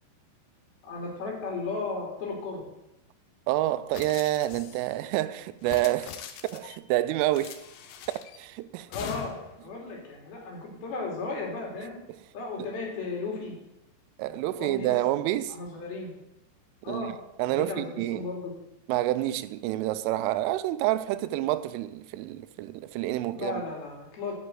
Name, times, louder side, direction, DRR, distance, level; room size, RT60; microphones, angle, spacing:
voice 1, 0.8-2.7 8.9-9.3 9.6-12.0 12.3-13.5 14.2-14.9 15.5-16.1 16.8-17.1 17.5-18.5 23.3-24.3, left 3 dB, 55° left, 4.3 m, -35 dB
voice 2, 3.5-6.2 6.5-7.6 8.4-8.9 14.2-15.6 16.9-17.1 17.4-18.3 18.9-23.6, right 15 dB, 90° right, 3.2 m, -28 dB
sound 1, 3.9-5.0 5.6-6.8 7.3-8.4 8.9-9.6, left 9 dB, 75° left, 2.6 m, -42 dB
11.5 x 5.9 x 7.8 m
omnidirectional pair, 5.6 m